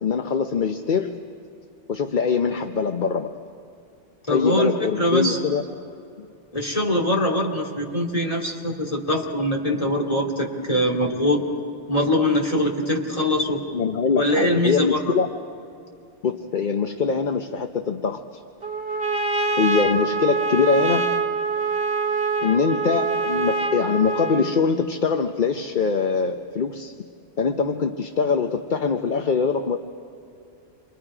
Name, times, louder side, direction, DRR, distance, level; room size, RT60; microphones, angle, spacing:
voice 1, 0.0-1.1 1.9-3.3 4.3-5.6 6.2-6.3 13.7-15.3 16.2-18.4 19.6-21.1 22.4-26.9 27.4-29.8, left 5 dB, 45° left, 6 dB, 0.8 m, -23 dB
voice 2, 4.3-5.4 6.5-11.4 11.9-13.6 14.1-15.0, left 1 dB, 30° left, -1 dB, 2.7 m, -23 dB
Trumpet, 18.6-24.6, right 4 dB, 50° right, 1.6 m, -24 dB
28.5 x 24.0 x 4.9 m, 2.6 s
omnidirectional pair, 1.2 m